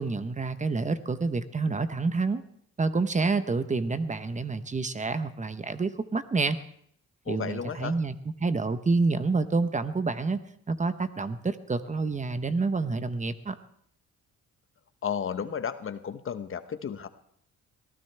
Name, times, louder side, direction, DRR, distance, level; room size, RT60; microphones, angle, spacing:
voice 1, 0.0-2.4 2.8-6.6 7.3-10.4 10.7-13.6, right 3 dB, 25° right, 11 dB, 0.9 m, -28 dB
voice 2, 7.3-8.0 15.0-17.1, left 7 dB, 45° left, 11 dB, 0.9 m, -33 dB
23.0 x 15.5 x 3.4 m, 0.67 s
cardioid pair, 90°, 30 cm